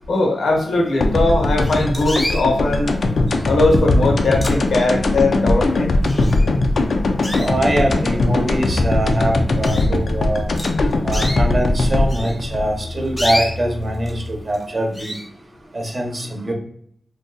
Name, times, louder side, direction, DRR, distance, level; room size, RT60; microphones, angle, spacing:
voice 1, 0.1-2.9 3.5-5.9 9.5-9.6, left 2 dB, 85° left, 1 dB, 0.7 m, -19 dB
sound 1, 1.0-13.8, left 2 dB, 70° left, 0.4 m, -19 dB
sound 2, 1.0-1.1 1.6-2.5 3.3-3.6 4.1-5.0 5.5-5.6 6.0-6.7 7.2-7.9 8.6-8.7 9.1-9.2 9.6-9.9 10.5-11.4 12.1-14.2 14.5-14.7 14.9-15.3, equal, 10° left, 0.7 m, -29 dB
voice 2, 7.3-10.5 11.0-15.2 15.7-16.5, right 1 dB, 40° right, 1 dB, 0.7 m, -23 dB
sound 3, 8.6-14.3, left 2 dB, 85° right, 1.0 m, -32 dB
2.6 x 2.3 x 3.8 m, 0.64 s
wide cardioid pair, 85°, 0 cm